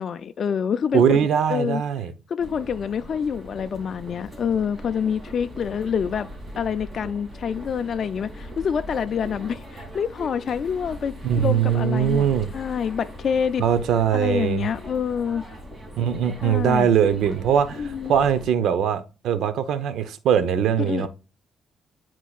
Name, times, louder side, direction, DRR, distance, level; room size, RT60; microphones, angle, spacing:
voice 1, 0.0-1.2 1.5-1.8 2.3-6.3 6.6-12.3 12.5-13.6 14.1-15.4 16.4-16.9 17.8-18.1 20.8-21.1, left 7 dB, 55° left, 0.3 m, -26 dB
voice 2, 0.9-2.1 11.2-12.5 13.6-14.7 16.0-21.1, right 8 dB, 75° right, 0.7 m, -21 dB
sound 1, 2.4-18.5, equal, 25° right, 2.7 m, -40 dB
10.0 x 4.5 x 2.4 m
cardioid pair, 90°, 0 cm